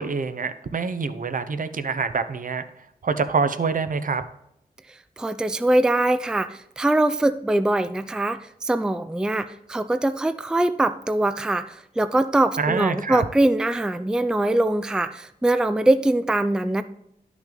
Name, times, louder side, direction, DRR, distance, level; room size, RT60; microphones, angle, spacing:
voice 1, 0.0-2.6 3.0-4.2 12.6-13.2, right 5 dB, 60° right, 10 dB, 0.7 m, -25 dB
voice 2, 5.2-16.8, right 1 dB, 5° right, 12 dB, 0.4 m, -22 dB
10.5 x 6.2 x 3.9 m, 0.77 s
cardioid pair, 60°, 16 cm